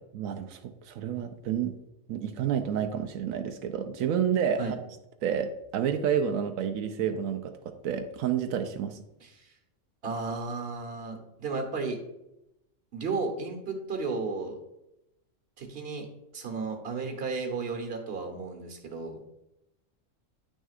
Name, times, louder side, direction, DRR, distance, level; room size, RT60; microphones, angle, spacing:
voice 1, 0.1-1.8 2.1-4.6 5.2-9.0, right 8 dB, 90° right, 7 dB, 1.0 m, -29 dB
voice 2, 9.2-9.5 10.0-12.0 12.9-14.5 15.6-16.1 16.3-19.2, right 4 dB, 50° right, 4 dB, 1.3 m, -34 dB
9.1 x 6.3 x 2.4 m, 0.88 s
omnidirectional pair, 1.4 m